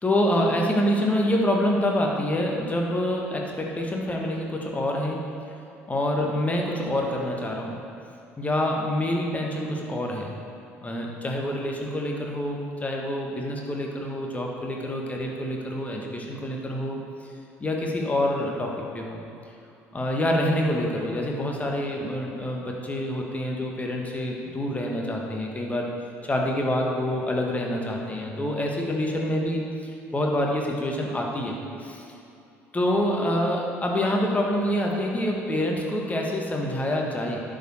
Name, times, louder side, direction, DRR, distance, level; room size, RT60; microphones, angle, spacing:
voice 1, 0.0-5.2 5.9-7.8 8.4-10.3 10.8-17.0 17.6-19.2 19.9-25.9 26.2-31.6 31.8-32.0 32.7-37.4, left 1 dB, 20° left, 0 dB, 1.6 m, -26 dB
10.0 x 5.2 x 6.4 m, 2.7 s
figure-of-eight pair, 55°, 8 cm